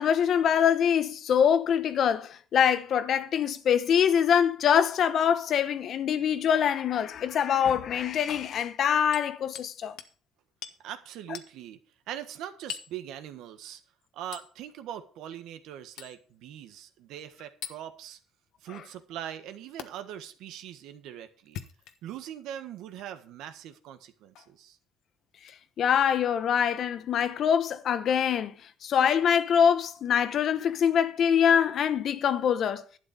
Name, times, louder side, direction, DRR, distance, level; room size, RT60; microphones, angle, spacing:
voice 1, 0.0-9.9 25.8-28.5 28.8-32.8, left 8 dB, 50° left, 1.0 m, -24 dB
Hammer, 9.1-9.7 10.0-10.2 10.6-10.8 11.3-11.5 12.7-13.0 14.3-14.5 16.0-16.2 17.6-17.8 19.8-19.9 21.4-22.2 22.9-23.1 24.3-24.5 25.4-25.6 27.2-27.3, left 10 dB, 75° left, 1.2 m, -42 dB
voice 2, 10.8-11.8 12.1-13.8 14.1-18.2 18.6-21.6 22.0-24.8, right 10 dB, 75° right, 1.5 m, -41 dB
12.0 x 8.8 x 5.1 m
cardioid pair, 120°, 0 cm